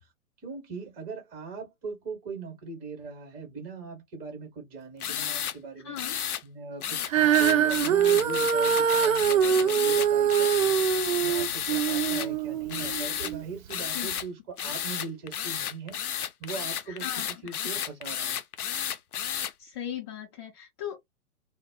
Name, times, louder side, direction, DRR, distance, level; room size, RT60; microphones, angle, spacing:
voice 1, 0.4-6.0 6.4-16.0 16.4-18.4, right 4 dB, 20° right, 0.9 m, -40 dB
sound 1, 5.0-5.6 6.0-6.4 6.8-12.3 12.7-13.3 13.7-14.3 14.6-19.5, left 9 dB, 80° left, 0.5 m, -32 dB
voice 2, 5.8-6.2 13.9-14.1 16.9-17.7 19.6-21.0, left 10 dB, 20° left, 0.4 m, -38 dB
Female singing, 7.1-13.4 14.1-14.2, right 8 dB, 65° right, 0.6 m, -24 dB
2.0 x 2.0 x 3.5 m
figure-of-eight pair, 120°, 44 cm